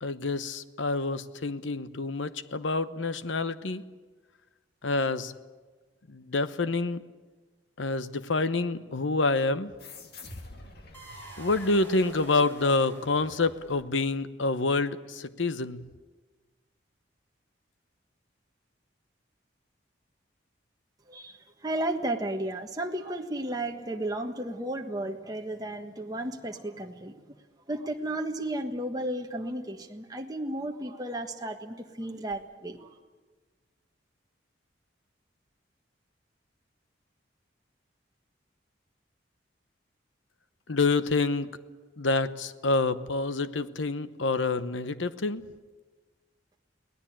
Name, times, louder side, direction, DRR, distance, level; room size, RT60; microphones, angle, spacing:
voice 1, 0.0-3.8 4.8-5.3 6.1-7.0 7.8-9.7 11.4-15.8 40.7-41.5 42.0-45.4, left 3 dB, 85° left, 13 dB, 1.0 m, -27 dB
sound 1, 9.8-12.8, left 2 dB, 55° left, 2.4 m, -47 dB
sound 2, 10.9-14.1, right 1 dB, 10° left, 4.9 m, -48 dB
voice 2, 21.1-27.2 27.7-33.0, right 1 dB, 20° right, 3 dB, 1.4 m, -33 dB
23.0 x 18.0 x 8.8 m, 1.3 s
head